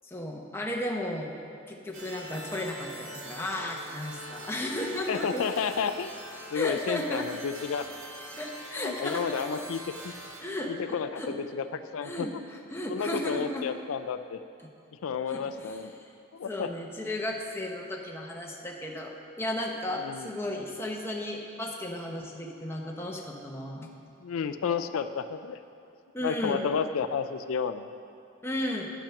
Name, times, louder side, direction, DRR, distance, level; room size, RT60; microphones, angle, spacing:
voice 1, 0.0-1.3 1.7-5.5 6.5-7.3 8.4-9.6 10.4-11.3 12.0-13.7 15.3-16.1 16.5-23.9 26.1-26.6 28.4-28.9, left 1 dB, 10° left, -1 dB, 0.9 m, -34 dB
sound 1, 1.9-10.4, right 1 dB, 85° right, 2.1 m, -43 dB
voice 2, 5.1-6.1 6.5-7.9 8.8-10.1 10.7-12.4 12.9-14.4 15.0-15.9 16.3-16.7 20.0-20.3 24.2-25.6 26.2-27.9, left 6 dB, 85° left, 10 dB, 0.4 m, -31 dB
10.0 x 8.8 x 5.8 m, 2.5 s
head